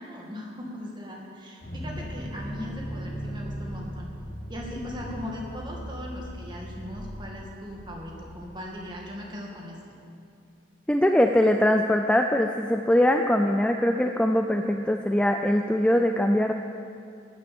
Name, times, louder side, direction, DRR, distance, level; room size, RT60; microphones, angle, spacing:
voice 1, 0.0-4.1 4.5-9.8, left 1 dB, 25° right, -1 dB, 2.1 m, -39 dB
sound 1, 1.6-8.8, equal, 40° left, 1.8 m, -38 dB
voice 2, 10.9-16.5, left 1 dB, 5° left, 5 dB, 0.4 m, -22 dB
13.5 x 9.9 x 7.0 m, 2.5 s
head